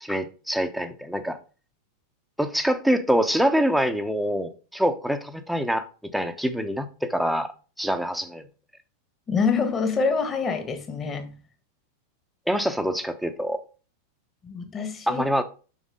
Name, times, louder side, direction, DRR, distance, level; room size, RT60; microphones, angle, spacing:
voice 1, 0.0-1.4 2.4-5.8 6.1-7.5 7.8-8.4 12.5-13.6 15.1-15.4, equal, ahead, 0.9 m, -25 dB
voice 2, 9.3-11.4 14.4-15.2, left 5 dB, 25° left, 1.6 m, -26 dB
7.3 x 6.2 x 3.7 m
figure-of-eight pair, 90°, 0 cm